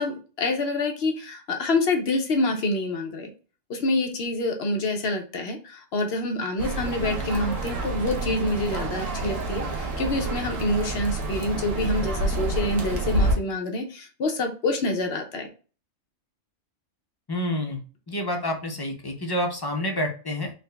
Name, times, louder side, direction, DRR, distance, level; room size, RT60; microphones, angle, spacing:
voice 1, 0.0-3.3 3.7-15.5, left 2 dB, 60° left, 4 dB, 0.9 m, -27 dB
sound 1, 6.6-13.3, right 2 dB, 85° right, 1.2 m, -28 dB
voice 2, 17.3-17.8 18.1-20.5, left 1 dB, 35° left, 2 dB, 0.3 m, -28 dB
3.9 x 2.1 x 3.3 m, 0.36 s
omnidirectional pair, 1.3 m